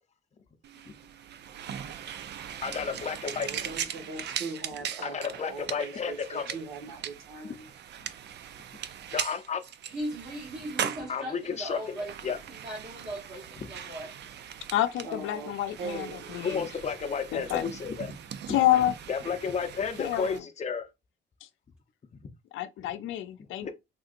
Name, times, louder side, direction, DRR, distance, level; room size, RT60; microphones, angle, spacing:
sound 1, 0.6-20.4, right 9 dB, 60° right, 0.4 m, -40 dB
voice 1, 2.6-3.6 5.0-6.6 9.1-9.6 11.1-12.4 13.6-13.7 16.4-18.1 19.1-20.9 23.6-23.7, left 6 dB, 35° left, 0.6 m, -32 dB
voice 2, 3.4-7.7 15.0-16.3 17.0-17.2, right 4 dB, 85° right, 1.3 m, -40 dB
voice 3, 9.9-14.1, right 1 dB, 40° right, 1.3 m, -38 dB
voice 4, 14.7-16.7 17.3-17.6 18.5-18.9 20.0-20.4 22.5-23.7, left 13 dB, 80° left, 0.5 m, -28 dB
3.6 x 2.8 x 2.5 m
cardioid pair, 90°, 20 cm